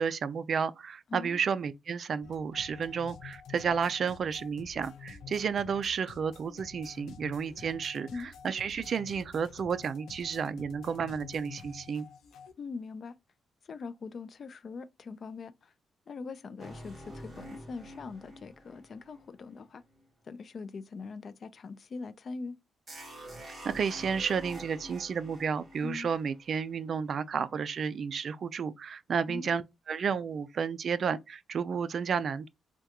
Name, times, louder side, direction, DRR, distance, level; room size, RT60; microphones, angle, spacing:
voice 1, 0.0-12.1 23.6-32.5, right 6 dB, 50° right, 0.3 m, -32 dB
voice 2, 1.1-1.4 8.1-8.3 12.6-13.1 13.7-15.7 16.1-19.8 20.3-22.6 25.8-26.1 29.3-29.5, left 4 dB, 45° left, 0.3 m, -42 dB
sound 1, 2.2-12.5, left 7 dB, 90° left, 0.6 m, -49 dB
sound 2, 16.6-20.0 22.9-27.0, equal, 20° right, 1.6 m, -47 dB
3.5 x 2.3 x 2.8 m
cardioid pair, 110°, 0 cm